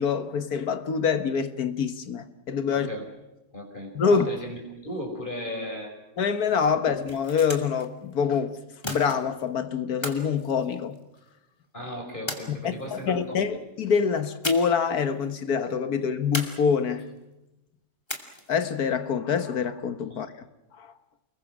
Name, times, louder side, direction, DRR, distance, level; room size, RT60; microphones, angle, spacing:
voice 1, 0.0-2.9 4.0-4.3 6.2-8.6 8.9-11.0 12.5-17.0 18.5-20.3 20.8-20.9, left 6 dB, 90° left, 1.9 m, -25 dB
voice 2, 2.7-3.0 3.5-5.9 6.8-6.9 11.7-13.4 20.1-20.2, left 1 dB, 35° left, 5.6 m, -36 dB
sound 1, 6.9-7.9 8.8-9.5 10.0-11.3 12.3-13.0 14.4-14.9 15.2-15.3 16.3-17.1 18.1-18.6, left 1 dB, 15° left, 2.4 m, -36 dB
30.0 x 21.5 x 6.2 m
omnidirectional pair, 1.6 m